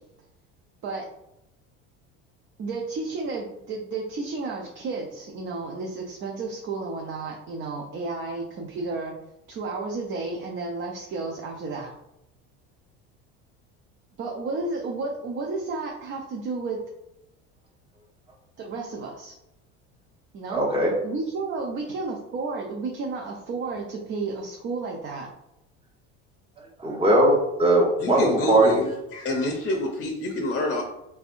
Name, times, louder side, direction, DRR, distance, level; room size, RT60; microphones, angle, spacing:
voice 1, 2.6-9.1 9.5-11.9 14.2-16.8 18.6-19.3 20.3-20.6 21.0-25.3, right 3 dB, 40° right, 0 dB, 0.6 m, -32 dB
voice 2, 20.5-20.9 26.8-28.9, right 1 dB, 20° right, -3 dB, 1.0 m, -20 dB
voice 3, 28.0-28.8 29.1-30.8, left 2 dB, 35° left, 1 dB, 0.7 m, -27 dB
3.3 x 3.3 x 2.6 m, 0.87 s
supercardioid pair, 120°, 31 cm